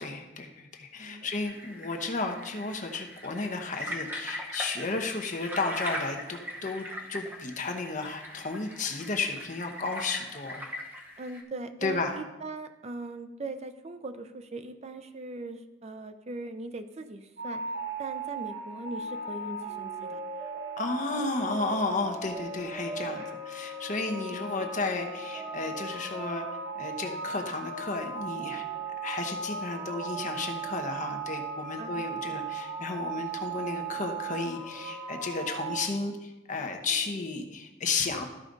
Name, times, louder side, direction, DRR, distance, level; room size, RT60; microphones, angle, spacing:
voice 1, 0.0-10.6 11.8-12.2 20.8-26.5 26.7-38.3, left 3 dB, 45° left, 4 dB, 1.0 m, -33 dB
sound 1, 1.4-11.4, equal, 10° right, 1.0 m, -40 dB
voice 2, 11.2-17.6 18.0-20.2 23.1-23.2 24.3-24.4 31.8-32.4, right 2 dB, 35° right, 8 dB, 0.6 m, -40 dB
sound 2, 17.4-35.9, right 4 dB, 60° right, 3.2 m, -37 dB
13.0 x 4.9 x 3.9 m, 1.0 s
head